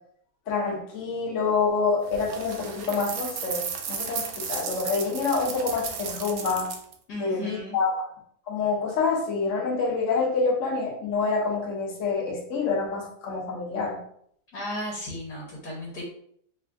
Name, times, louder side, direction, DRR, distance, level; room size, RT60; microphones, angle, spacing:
voice 1, 0.5-6.7 7.2-8.1 8.5-14.0, left 4 dB, 50° left, -3 dB, 1.2 m, -27 dB
sound 1, 2.1-6.9, right 6 dB, 70° right, 1.0 m, -34 dB
voice 2, 7.1-7.7 14.5-16.0, left 1 dB, 70° left, -5 dB, 1.7 m, -35 dB
3.5 x 2.5 x 3.4 m, 0.66 s
omnidirectional pair, 1.8 m